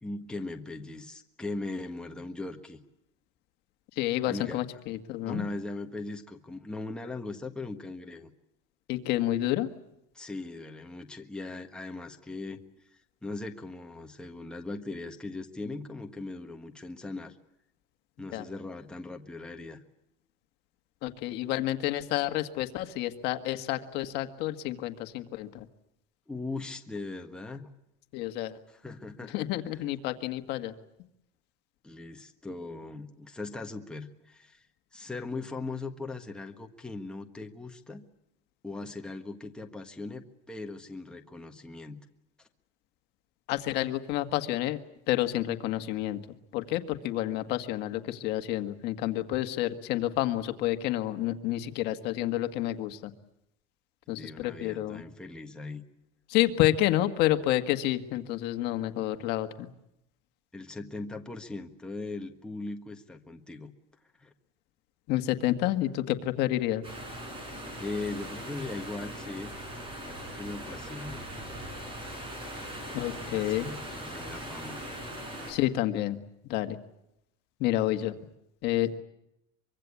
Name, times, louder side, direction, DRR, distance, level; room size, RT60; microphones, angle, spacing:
voice 1, 0.0-2.8 4.2-4.6 5.2-8.3 10.1-12.6 12.9-17.4 18.2-19.8 26.3-27.6 28.7-29.9 31.8-34.7 34.9-38.0 38.6-42.0 54.2-55.8 60.5-63.7 64.2-64.3 67.8-69.5 70.0-71.2 73.3-74.8, left 2 dB, 5° left, 3 dB, 1.5 m, -39 dB
voice 2, 4.0-5.4 8.9-9.7 18.3-18.4 21.0-25.6 28.1-28.6 29.3-30.7 43.5-44.8 45.1-46.2 46.5-53.1 54.1-55.0 56.3-59.7 65.1-66.8 72.9-73.7 75.5-76.2 76.5-76.8 77.6-78.2 78.6-79.0, left 14 dB, 55° left, 8 dB, 1.7 m, -29 dB
sound 1, 66.8-75.5, right 1 dB, 25° right, 6.6 m, -40 dB
24.5 x 23.5 x 8.5 m, 0.85 s
cardioid pair, 150°, 20 cm